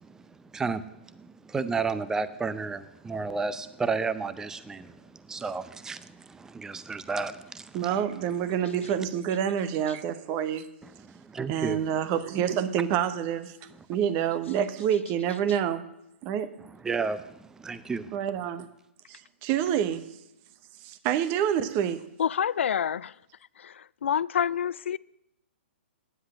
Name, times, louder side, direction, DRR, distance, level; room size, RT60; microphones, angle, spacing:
voice 1, 0.5-0.9 1.1-5.0 5.3-8.1 10.8-11.8 16.7-18.2, right 4 dB, 10° right, 0.5 m, -32 dB
voice 2, 7.7-10.7 11.5-13.6 13.9-15.9 16.2-16.5 18.1-18.7 19.1-20.1 20.8-22.0, right 9 dB, 35° right, 1.0 m, -27 dB
voice 3, 22.2-23.2 23.6-25.0, left 8 dB, 75° left, 0.4 m, -28 dB
10.0 x 7.8 x 8.7 m
hypercardioid pair, 135°, 7 cm